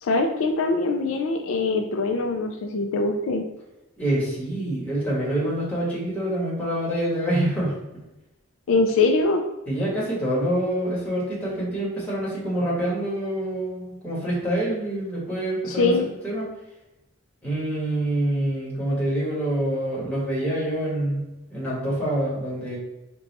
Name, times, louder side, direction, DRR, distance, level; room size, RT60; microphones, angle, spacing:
voice 1, 0.0-3.4 8.7-9.4 15.7-16.1, left 3 dB, 65° left, 4 dB, 0.4 m, -22 dB
voice 2, 4.0-8.0 9.7-16.5 17.4-22.8, right 1 dB, 5° left, -6 dB, 1.3 m, -26 dB
3.9 x 2.3 x 4.0 m, 0.97 s
head